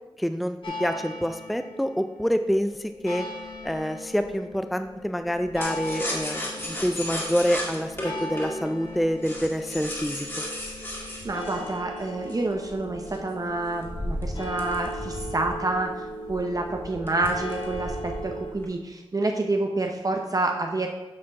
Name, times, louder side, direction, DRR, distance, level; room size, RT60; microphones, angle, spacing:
voice 1, 0.2-3.3 3.6-10.4, equal, ahead, 8 dB, 0.4 m, -27 dB
sound 1, 0.6-18.5, left 1 dB, 65° left, 1.5 m, -37 dB
sound 2, 5.6-12.5 13.1-15.5 15.9-16.0 16.3-16.6 17.1-17.8 18.1-18.6, left 1 dB, 25° left, 1.8 m, -35 dB
voice 2, 10.8-20.9, right 2 dB, 40° right, 2 dB, 0.7 m, -28 dB
7.5 x 4.3 x 5.9 m, 1.2 s
wide cardioid pair, 75°, 9 cm